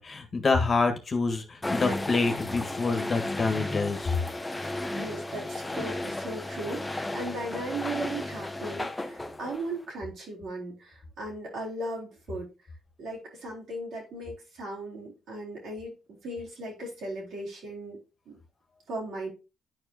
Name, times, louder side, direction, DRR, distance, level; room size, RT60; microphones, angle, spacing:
voice 1, 0.0-4.1, left 3 dB, 40° left, 1.7 m, -27 dB
sound 1, 1.6-9.8, left 1 dB, 15° left, 0.9 m, -34 dB
voice 2, 4.9-12.5 13.0-18.0 18.3-18.4 18.9-19.3, right 1 dB, 70° right, 4.0 m, -37 dB
10.0 x 4.7 x 2.9 m
cardioid pair, 90°, 0 cm